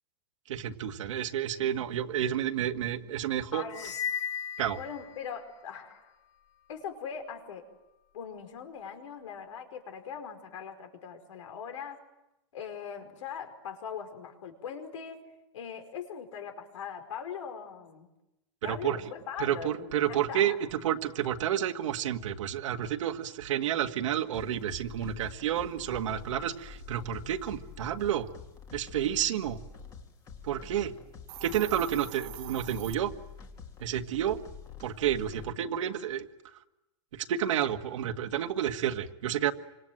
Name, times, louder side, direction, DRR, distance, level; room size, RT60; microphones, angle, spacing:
voice 1, 0.5-3.7 4.6-4.8 18.6-19.0 19.4-28.3 28.7-29.6 30.4-30.9 31.4-33.1 33.8-34.4 34.8-36.3 37.1-39.5, right 10 dB, 75° right, 7 dB, 1.8 m, -30 dB
voice 2, 3.5-3.9 4.8-6.1 6.7-7.6 8.1-12.0 12.5-15.2 15.5-18.1 18.6-20.6, left 7 dB, 80° left, 7 dB, 5.1 m, -41 dB
sound 1, 3.7-5.6, left 8 dB, 40° left, 1.5 m, -36 dB
sound 2, 24.3-35.5, left 6 dB, 20° left, 2.3 m, -47 dB
Hiss, 31.1-32.9, right 19 dB, 35° right, 1.0 m, -45 dB
28.5 x 25.5 x 7.8 m, 0.95 s
supercardioid pair, 170°, 16 cm